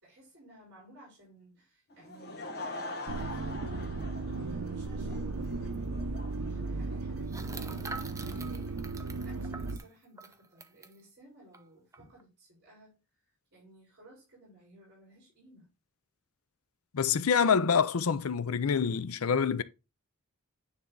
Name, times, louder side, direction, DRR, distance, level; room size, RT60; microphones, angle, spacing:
voice 1, 0.0-3.8 4.1-13.0 13.5-15.7, right 1 dB, 50° right, 4.0 m, -56 dB
Laughter / Crowd, 1.9-8.8, left 2 dB, 50° left, 1.5 m, -44 dB
sound 1, 3.1-9.8, right 3 dB, 85° right, 0.8 m, -36 dB
sound 2, 5.4-5.5 5.7-5.9 7.3-11.0 11.5-11.6 11.9-12.2, right 3 dB, 15° right, 0.6 m, -45 dB
voice 2, 16.9-19.6, left 6 dB, 75° left, 0.5 m, -26 dB
9.5 x 3.5 x 3.8 m
head